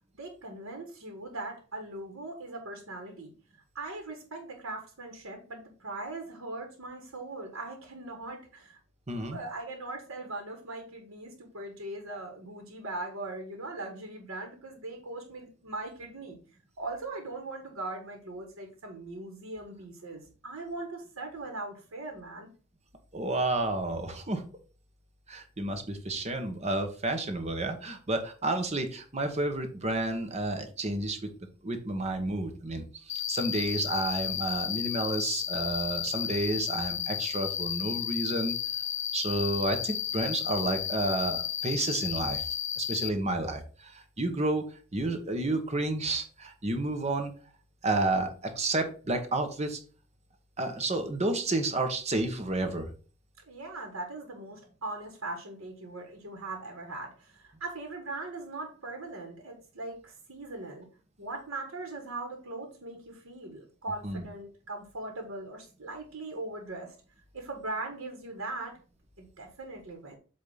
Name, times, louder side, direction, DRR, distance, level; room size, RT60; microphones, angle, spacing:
voice 1, 0.1-3.3 3.7-8.8 9.3-16.4 16.8-22.5 53.5-60.9 61.2-66.9 67.3-68.8 69.2-70.2, right 2 dB, 80° right, 3 dB, 1.5 m, -40 dB
voice 2, 9.1-9.4 23.1-24.4 25.3-31.2 31.6-38.5 39.1-42.5 42.8-47.3 47.8-49.8 50.6-52.9 64.0-64.3, right 2 dB, 30° right, 7 dB, 1.0 m, -31 dB
Cricket, 33.1-43.1, left 10 dB, 55° left, 0.6 m, -33 dB
8.2 x 2.8 x 5.6 m, 0.38 s
head